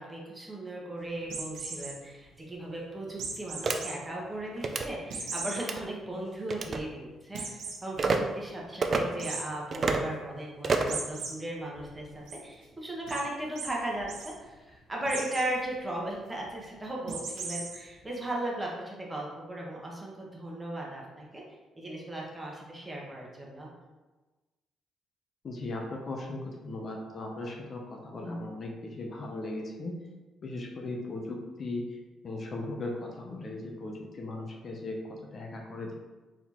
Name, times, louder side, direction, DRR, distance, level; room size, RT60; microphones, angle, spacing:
voice 1, 0.0-21.4 21.7-23.7, right 1 dB, 20° right, -3 dB, 1.2 m, -37 dB
sound 1, 1.2-1.9 3.2-3.9 4.4-4.5 5.1-5.6 6.1-6.2 6.5-6.6 7.3-7.8 9.2-9.4 10.9-11.3 11.7-12.3 13.1-13.2 13.6-13.7 14.0-14.3 15.1-15.5 17.1-17.8, right 4 dB, 85° right, 0.9 m, -37 dB
sound 2, 3.6-3.8 4.6-4.9 5.6-5.8 6.5-6.8 8.0-8.2 8.8-9.0 9.7-10.0 10.6-11.0, right 4 dB, 45° right, 0.4 m, -27 dB
voice 2, 25.4-30.0 30.4-32.0 32.2-35.9, left 2 dB, 45° left, 0 dB, 0.7 m, -37 dB
4.3 x 3.7 x 3.0 m, 1.2 s
cardioid pair, 90°, 0 cm